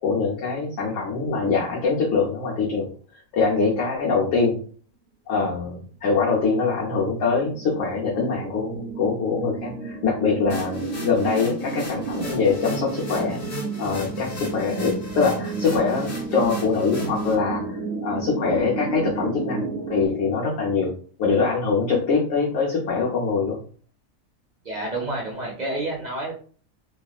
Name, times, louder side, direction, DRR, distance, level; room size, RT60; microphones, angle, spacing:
voice 1, 0.0-2.9 3.1-4.6 5.3-13.4 13.8-20.9 21.2-23.6, left 4 dB, 65° left, -4 dB, 1.0 m, -23 dB
sound 1, 6.8-20.1, right 4 dB, 15° right, 0.8 m, -32 dB
sound 2, 10.5-17.3, left 1 dB, 45° left, 1.2 m, -37 dB
voice 2, 24.6-26.3, right 2 dB, 45° right, -2 dB, 0.6 m, -29 dB
3.1 x 2.3 x 2.4 m, 0.43 s
omnidirectional pair, 1.5 m